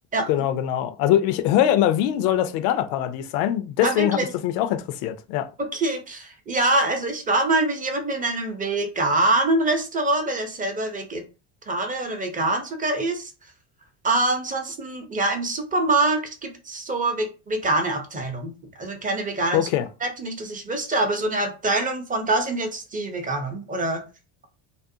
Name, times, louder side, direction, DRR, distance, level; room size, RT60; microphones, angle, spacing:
voice 1, 0.3-5.5 19.5-19.9, left 11 dB, 70° left, 0.6 m, -22 dB
voice 2, 3.8-4.3 5.7-11.2 11.7-13.3 14.0-18.5 18.8-19.7 20.0-24.0, right 2 dB, 20° right, 0.6 m, -24 dB
2.5 x 2.1 x 2.6 m
supercardioid pair, 95°, 45 cm